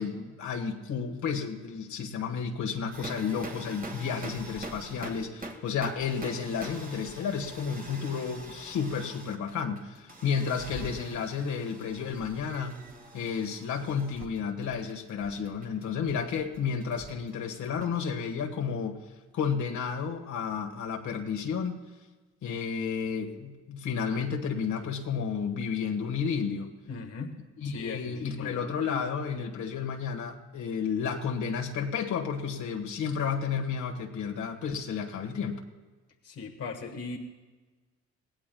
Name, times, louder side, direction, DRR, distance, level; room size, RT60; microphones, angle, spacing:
voice 1, 0.0-12.8 13.1-19.0 19.3-21.8 22.4-26.7 27.6-35.6, left 6 dB, 70° left, 3 dB, 1.5 m, -32 dB
sound 1, 2.9-18.1, right 2 dB, 30° right, 1.9 m, -44 dB
voice 2, 26.9-27.4 27.6-28.7 36.2-37.2, left 4 dB, 55° left, 2 dB, 1.3 m, -38 dB
21.0 x 17.0 x 2.3 m, 1.3 s
cardioid pair, 90°, 30 cm